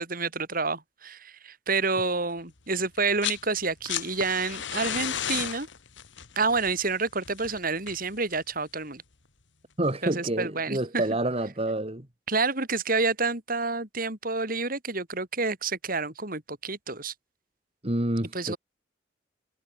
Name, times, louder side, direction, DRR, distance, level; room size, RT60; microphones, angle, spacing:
voice 1, 0.0-5.7 6.4-9.0 10.0-11.0 12.3-17.1 18.3-18.6, right 4 dB, 50° right, 7.3 m, -29 dB
sound 1, 3.0-3.5 3.7-8.6 9.8-9.9, left 9 dB, 85° left, 2.0 m, -34 dB
voice 2, 9.8-12.1 17.8-18.5, right 1 dB, 35° right, 2.4 m, -28 dB
head